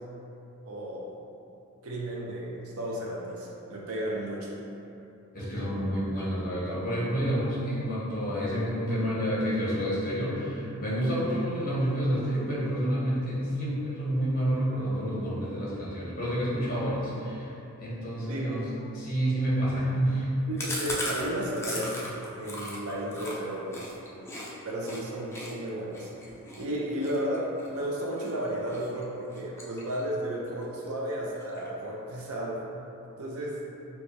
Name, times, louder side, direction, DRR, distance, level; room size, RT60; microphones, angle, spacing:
voice 1, 0.7-1.1 1.8-4.5 18.3-18.6 20.5-23.8 24.6-26.1 26.6-32.6 33.2-33.6, right 1 dB, 70° right, -3 dB, 0.5 m, -33 dB
voice 2, 5.3-17.5 17.8-20.3, equal, 40° left, -8 dB, 0.9 m, -29 dB
Chewing mastication, 20.6-24.5 24.8-25.0 25.3-28.3 28.7-29.0 29.3-30.2 30.5-30.6 30.9-31.0 31.3-31.9, left 1 dB, 10° left, 0.3 m, -37 dB
4.5 x 2.2 x 2.7 m, 2.8 s
head